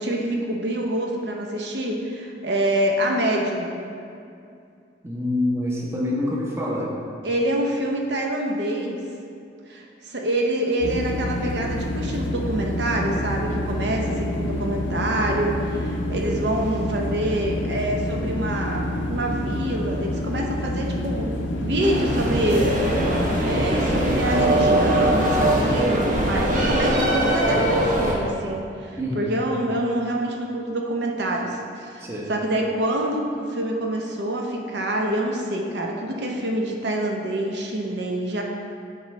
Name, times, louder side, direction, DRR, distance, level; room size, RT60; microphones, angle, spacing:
voice 1, 0.0-3.7 7.2-9.0 9.7-23.0 23.4-38.4, right 1 dB, 60° right, 0 dB, 0.6 m, -26 dB
voice 2, 5.0-6.9 29.0-29.4 32.0-32.3, left 1 dB, 15° right, -3 dB, 0.7 m, -26 dB
sound 1, 10.8-25.8, left 1 dB, 85° left, 0.6 m, -28 dB
sound 2, 21.8-28.1, right 1 dB, 45° right, 1.0 m, -22 dB
9.7 x 3.9 x 3.1 m, 2.5 s
head